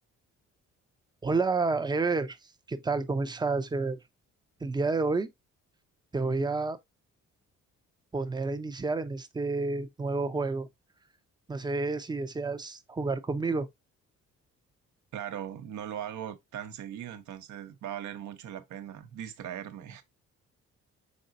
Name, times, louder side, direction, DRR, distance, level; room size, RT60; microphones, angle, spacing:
voice 1, 1.2-2.4 2.7-4.0 4.6-5.3 6.1-6.8 8.1-10.7 11.5-13.7, right 3 dB, 15° right, 0.5 m, -29 dB
voice 2, 15.1-20.0, right 10 dB, 75° right, 0.9 m, -39 dB
5.3 x 3.8 x 2.5 m
cardioid pair, 90°, 30 cm